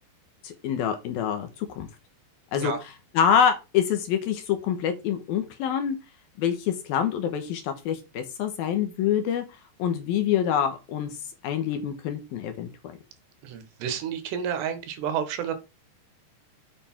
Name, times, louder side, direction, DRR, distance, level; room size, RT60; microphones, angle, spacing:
voice 1, 0.4-1.9 2.5-2.7 3.1-6.0 6.4-9.4 9.8-11.2 11.4-12.7, left 8 dB, 70° left, 2.8 m, -26 dB
voice 2, 13.4-15.5, right 8 dB, 80° right, 3.5 m, -30 dB
8.0 x 7.0 x 4.4 m
omnidirectional pair, 4.9 m